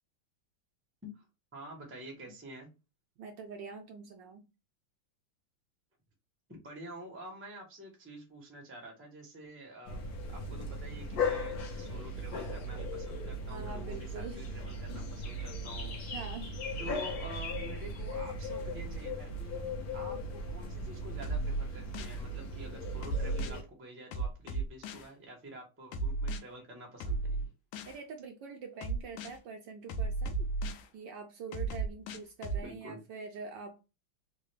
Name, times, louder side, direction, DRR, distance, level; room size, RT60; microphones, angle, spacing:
voice 1, 1.5-2.7 6.5-10.0 10.3-16.0 16.8-19.6 19.9-27.5 32.6-33.0, right 1 dB, 15° right, 0.4 m, -48 dB
voice 2, 3.2-4.5 13.5-14.4 16.1-16.6 27.9-30.5 30.9-33.8, right 5 dB, 75° right, 1.1 m, -44 dB
sound 1, 9.8-23.6, left 1 dB, 60° left, 1.0 m, -38 dB
sound 2, 21.2-22.2 23.0-23.6 24.1-25.1 25.9-26.4 27.0-28.0 28.8-29.4 29.9-30.9 31.5-32.6, right 3 dB, 75° left, 1.3 m, -34 dB
3.7 x 2.2 x 3.2 m
omnidirectional pair, 2.3 m